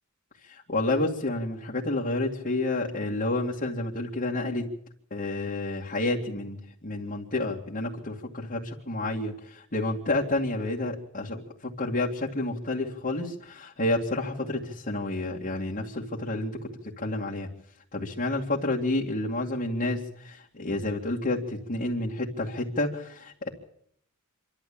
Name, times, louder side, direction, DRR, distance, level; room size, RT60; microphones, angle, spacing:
voice 1, 0.4-4.7 5.1-16.6 17.0-17.5 17.9-23.5, left 2 dB, 40° left, -4 dB, 2.4 m, -30 dB
26.5 x 12.5 x 8.7 m, 0.69 s
head